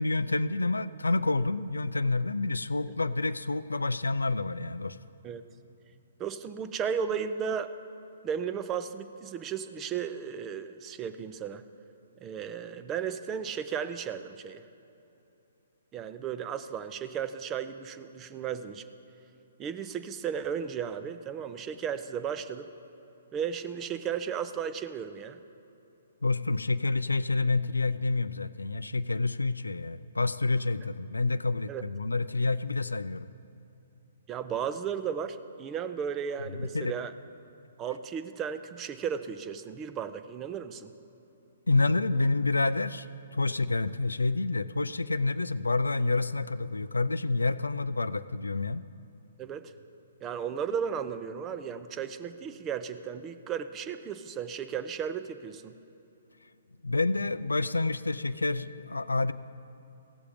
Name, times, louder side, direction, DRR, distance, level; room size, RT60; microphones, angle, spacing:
voice 1, 0.0-5.0 26.2-33.3 36.5-36.9 41.7-48.8 56.8-59.3, left 3 dB, 90° left, 14 dB, 0.3 m, -28 dB
voice 2, 6.2-7.7 8.2-11.6 12.2-14.6 15.9-18.8 19.6-22.7 23.3-25.4 31.7-31.9 34.3-37.1 37.8-40.9 49.4-49.7 50.2-55.8, right 7 dB, 20° right, 11 dB, 0.5 m, -34 dB
16.5 x 7.0 x 5.0 m, 2.9 s
figure-of-eight pair, 130°, 0 cm